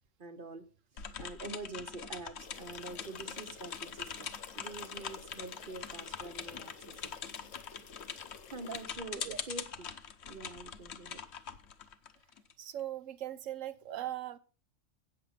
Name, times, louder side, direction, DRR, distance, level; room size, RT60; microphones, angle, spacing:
voice 1, 0.2-0.7 0.9-4.3 4.5-7.3 8.5-9.9 10.3-11.2, right 3 dB, 45° right, 1.1 m, -46 dB
sound 1, 1.0-12.5, left 7 dB, 60° left, 1.1 m, -43 dB
sound 2, 2.4-8.8, left 6 dB, 80° left, 1.3 m, -53 dB
voice 2, 12.6-14.4, right 12 dB, 85° right, 1.1 m, -39 dB
8.2 x 7.9 x 5.6 m
omnidirectional pair, 1.3 m